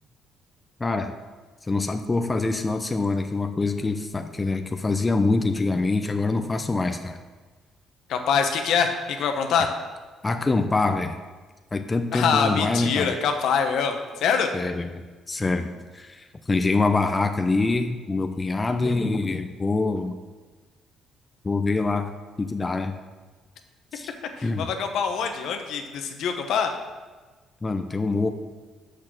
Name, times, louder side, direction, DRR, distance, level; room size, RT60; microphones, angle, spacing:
voice 1, 0.8-1.2 1.7-7.2 10.2-11.2 11.7-13.1 14.5-14.9 15.3-15.7 15.9-20.2 21.4-22.1 22.4-23.0 23.9-24.1 24.4-24.7 27.6-28.3, left 3 dB, 20° left, 7 dB, 0.6 m, -25 dB
voice 2, 8.1-9.7 12.1-14.5 24.4-26.7, left 6 dB, 75° left, 6 dB, 0.9 m, -24 dB
6.4 x 6.1 x 6.3 m, 1.3 s
cardioid pair, 95°, 0 cm